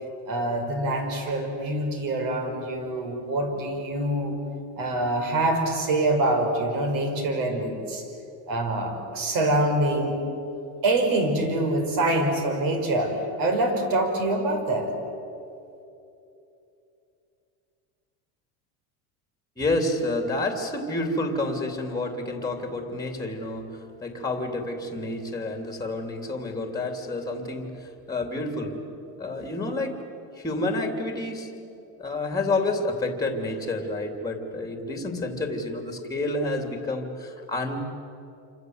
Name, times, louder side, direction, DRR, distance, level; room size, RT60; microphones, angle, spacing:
voice 1, 0.3-4.4 4.8-8.0 8.5-10.1 10.8-14.9, right 1 dB, 50° right, 4 dB, 5.8 m, -25 dB
voice 2, 19.6-28.8 29.2-30.0 30.3-31.5 32.0-37.8, left 2 dB, 10° left, 4 dB, 2.9 m, -29 dB
28.0 x 25.5 x 8.0 m, 2.8 s
cardioid pair, 155°, 44 cm